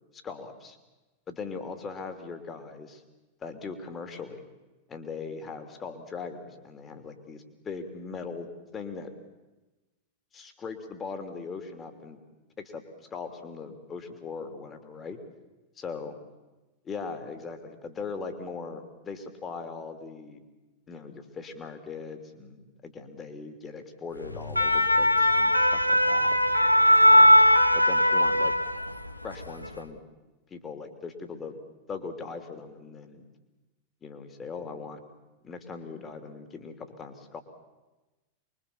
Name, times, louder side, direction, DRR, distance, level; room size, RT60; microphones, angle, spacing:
voice 1, 0.1-0.8 1.3-3.0 3.4-4.4 4.9-9.1 10.3-12.2 12.6-12.8 13.1-15.2 15.8-16.2 16.8-20.4 20.9-26.4 27.1-27.4 27.7-28.5 29.2-30.0 30.5-31.6 31.9-33.2 34.0-35.0 35.4-37.4, left 4 dB, 20° left, 7 dB, 3.1 m, -40 dB
sound 1, 24.3-29.1 29.4-29.7, equal, 90° left, 1.2 m, -20 dB
25.0 x 23.0 x 7.2 m, 1.1 s
figure-of-eight pair, 90°, 0 cm